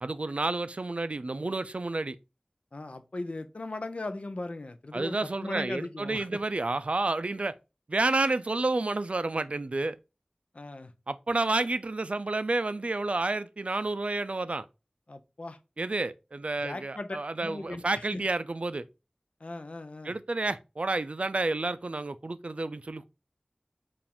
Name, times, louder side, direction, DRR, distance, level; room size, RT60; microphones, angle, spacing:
voice 1, 0.0-2.2 4.9-7.5 7.9-10.0 11.1-14.7 15.8-18.9 20.0-23.1, right 2 dB, 65° right, 0.3 m, -30 dB
voice 2, 2.7-6.4 10.5-10.9 15.1-15.6 16.6-18.2 19.4-20.2, left 2 dB, 65° left, 0.5 m, -38 dB
4.7 x 2.5 x 3.5 m
wide cardioid pair, 45°, 2 cm